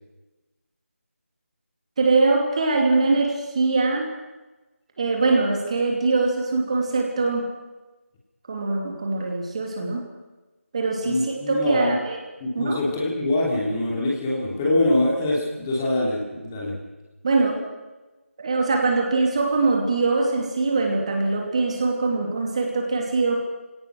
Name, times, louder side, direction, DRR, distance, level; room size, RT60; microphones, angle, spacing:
voice 1, 2.0-4.1 5.0-7.5 8.5-10.1 10.7-12.2 12.5-12.8 17.2-17.6 18.4-23.4, right 3 dB, 25° right, 1 dB, 2.8 m, -22 dB
voice 2, 11.0-11.9 12.4-16.7, left 1 dB, 15° left, -3 dB, 3.0 m, -24 dB
26.5 x 18.0 x 6.3 m, 1.1 s
figure-of-eight pair, 165°, 8 cm